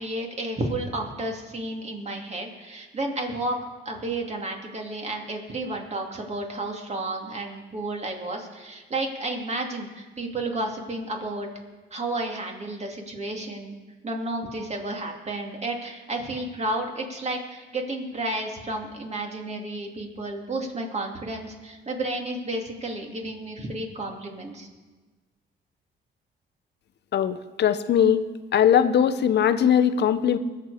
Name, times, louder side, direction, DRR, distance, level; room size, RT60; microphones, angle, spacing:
voice 1, 0.0-3.6 3.8-11.5 11.9-13.8 14.0-24.7, right 2 dB, 35° right, 1 dB, 2.6 m, -32 dB
voice 2, 27.1-28.2 28.5-30.4, left 9 dB, 60° left, 10 dB, 0.8 m, -20 dB
21.0 x 7.5 x 4.9 m, 1.3 s
cardioid pair, 90°, 20 cm